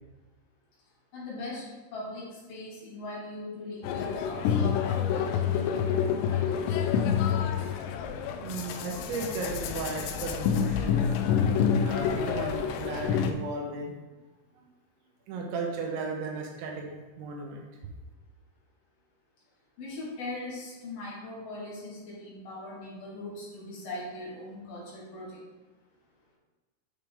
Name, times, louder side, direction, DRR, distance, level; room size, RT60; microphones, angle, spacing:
voice 1, 1.1-1.6 1.9-7.1 19.8-25.4, left 2 dB, 55° left, -5 dB, 2.7 m, -40 dB
sound 1, 3.8-13.3, left 8 dB, 90° left, 2.5 m, -28 dB
voice 2, 8.4-11.0 11.8-13.9 15.3-17.6, right 4 dB, 75° right, 0 dB, 3.0 m, -35 dB
8.6 x 6.4 x 3.5 m, 1.2 s
omnidirectional pair, 5.7 m